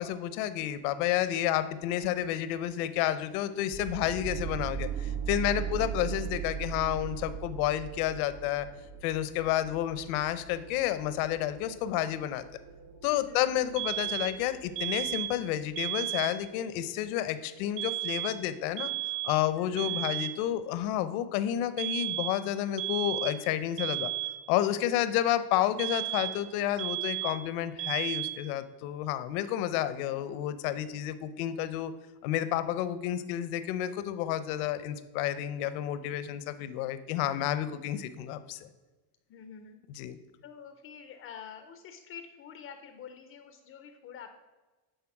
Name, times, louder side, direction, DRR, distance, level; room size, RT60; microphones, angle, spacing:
voice 1, 0.0-8.7 9.0-12.4 13.0-18.9 19.2-24.1 24.5-31.9 32.2-38.6 40.0-40.2, left 12 dB, 70° left, 13 dB, 0.8 m, -30 dB
sound 1, 3.7-15.7, right 8 dB, 85° right, 1.7 m, -40 dB
voice 2, 5.6-6.2 13.2-14.3 19.5-20.1 29.4-29.8 39.3-39.8 40.4-44.3, left 7 dB, 30° left, 8 dB, 0.5 m, -48 dB
sound 2, 13.8-14.4 14.8-15.4 15.8-16.4 17.8-18.4 18.8-19.4 19.8-20.4 21.8-22.4 22.8-23.4 23.8-24.4 25.8-26.5 26.8-27.5 27.8-28.5, right 16 dB, 45° right, 0.7 m, -33 dB
10.5 x 4.1 x 5.9 m, 1.2 s
cardioid pair, 165°, 45 cm